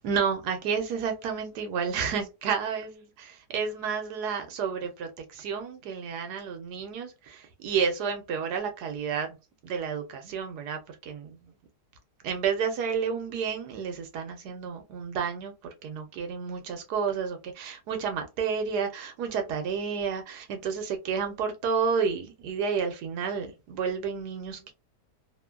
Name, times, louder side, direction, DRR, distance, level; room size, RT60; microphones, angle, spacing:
voice 1, 0.0-9.4 9.6-11.4 12.2-15.5 15.8-24.7, right 6 dB, 75° right, 1.2 m, -31 dB
3.0 x 2.2 x 2.3 m
omnidirectional pair, 1.8 m